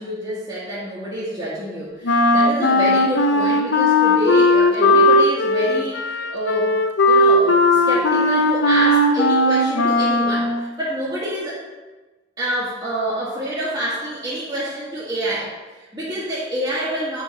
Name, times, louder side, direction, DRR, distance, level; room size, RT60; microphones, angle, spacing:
voice 1, 0.0-6.7 7.0-11.6 12.4-17.2, equal, 20° right, -10 dB, 1.4 m, -27 dB
Wind instrument woodwind instrument, 2.0-10.6, left 2 dB, 65° left, 0.6 m, -17 dB
7.5 x 3.8 x 5.2 m, 1.2 s
head